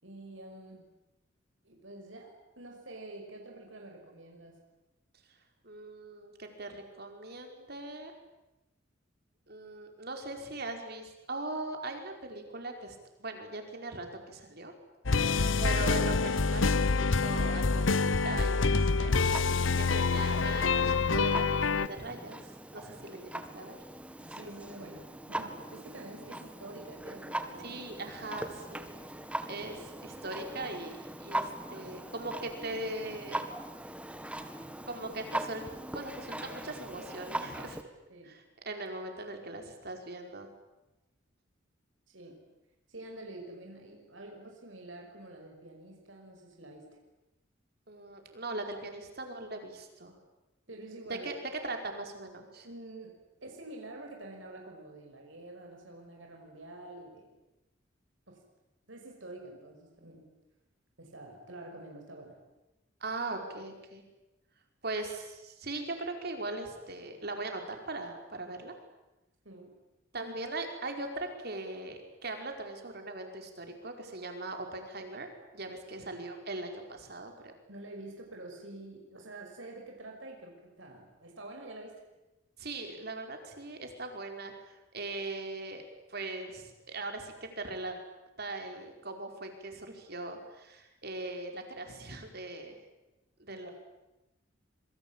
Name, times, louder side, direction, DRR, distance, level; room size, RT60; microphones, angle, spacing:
voice 1, 0.0-0.9 1.6-4.6 22.8-22.9 24.3-27.8 38.1-38.3 42.1-42.4 42.9-46.9 50.7-51.3 52.6-53.1 53.4-57.3 58.3-58.4 58.9-60.3 61.0-62.4 69.4-69.8 70.1-70.3 76.0-76.1 77.7-81.9 93.5-93.7, right 2 dB, 85° right, 1 dB, 5.9 m, -47 dB
voice 2, 5.6-8.1 9.5-14.7 15.1-15.2 15.6-19.1 19.4-23.8 27.6-28.9 29.5-33.5 34.8-35.6 35.9-37.8 38.2-40.5 47.9-50.1 51.1-52.7 63.0-64.0 64.8-68.7 70.1-75.3 75.5-77.5 82.6-85.8 86.1-88.0 88.4-92.8 93.4-93.7, right 2 dB, 55° right, 4 dB, 5.1 m, -40 dB
sound 1, 15.1-21.9, left 4 dB, 90° left, 1.0 m, -26 dB
Clock, 19.3-37.8, right 1 dB, 5° right, 1.8 m, -41 dB
26.5 x 23.5 x 9.0 m, 1.0 s
head